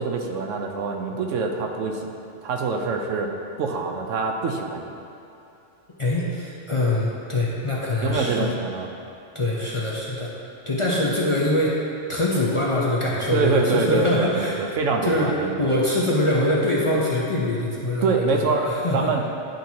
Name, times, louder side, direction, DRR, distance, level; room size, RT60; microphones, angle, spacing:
voice 1, 0.0-2.1 2.4-3.3 3.6-4.9 8.0-8.9 13.3-15.8 18.0-19.3, right 4 dB, 80° right, 3 dB, 1.0 m, -25 dB
voice 2, 6.0-8.5 9.3-10.3 10.7-11.8 12.1-14.6 15.0-19.1, left 1 dB, 35° left, -6 dB, 0.6 m, -23 dB
10.5 x 4.4 x 2.8 m, 2.7 s
omnidirectional pair, 1.3 m